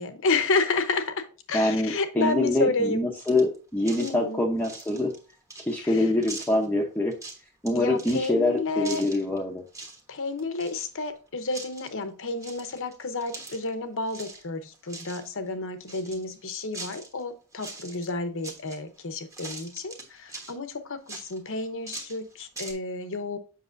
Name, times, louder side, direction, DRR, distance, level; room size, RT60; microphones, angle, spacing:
voice 1, 0.0-3.1 4.0-4.5 5.8-6.1 7.7-9.0 10.1-23.4, left 3 dB, 60° left, 9 dB, 0.9 m, -30 dB
voice 2, 1.5-5.1 5.7-7.1 7.6-9.6, left 1 dB, 10° left, -1 dB, 0.8 m, -25 dB
sound 1, 3.2-3.6 3.8-4.2 4.6-5.9 6.2-6.7 7.1-7.7 8.0-8.3 8.8-9.4 9.7-10.0 10.3-11.2 11.5-11.9 12.4-13.7 14.1-14.4 14.7-15.3 15.9-17.2 17.5-18.1 18.4-19.0 19.3-20.6 21.1-22.7, right 2 dB, 15° right, 1.3 m, -42 dB
7.6 x 5.9 x 2.6 m, 0.35 s
head